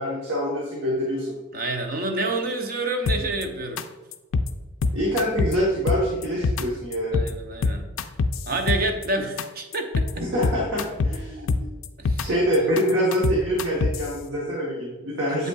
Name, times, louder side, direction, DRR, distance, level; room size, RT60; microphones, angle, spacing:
voice 1, 0.0-1.4 4.9-7.2 10.1-11.7 12.2-15.5, equal, 55° right, -3 dB, 1.0 m, -25 dB
voice 2, 1.5-3.8 7.1-7.9 8.5-10.1 11.4-11.5 12.0-12.3 15.4-15.5, right 2 dB, 40° right, 4 dB, 0.6 m, -28 dB
sound 1, 3.1-3.4 3.8-3.9 4.1-4.5 4.8-5.5 5.9-6.6 6.9-7.3 7.6-9.1 9.4-9.5 9.7-10.1 10.4-11.2 11.5-12.3 12.5-14.1, left 3 dB, 65° left, 0.4 m, -24 dB
7.7 x 5.3 x 2.3 m, 1.2 s
head